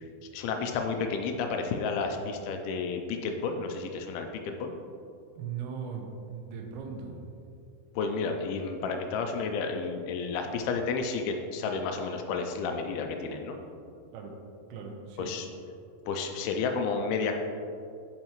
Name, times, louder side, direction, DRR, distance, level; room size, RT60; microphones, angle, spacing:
voice 1, 0.2-4.7 8.0-13.6 15.2-15.5 16.1-17.4, left 4 dB, 80° left, 4 dB, 2.4 m, -31 dB
voice 2, 5.4-7.2 14.1-14.3 14.7-15.3, right 6 dB, 85° right, 2 dB, 2.8 m, -38 dB
10.5 x 4.7 x 3.0 m, 2.5 s
omnidirectional pair, 4.5 m